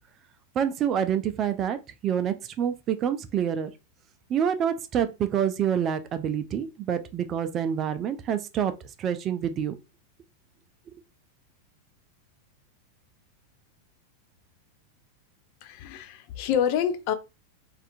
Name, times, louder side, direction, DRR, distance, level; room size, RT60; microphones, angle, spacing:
voice 1, 0.6-1.8 2.0-3.7 4.3-8.7 9.0-9.7, right 9 dB, 30° right, 0.3 m, -27 dB
voice 2, 15.6-17.1, left 9 dB, 45° left, 0.3 m, -27 dB
3.4 x 2.4 x 2.6 m
figure-of-eight pair, 90°, 0 cm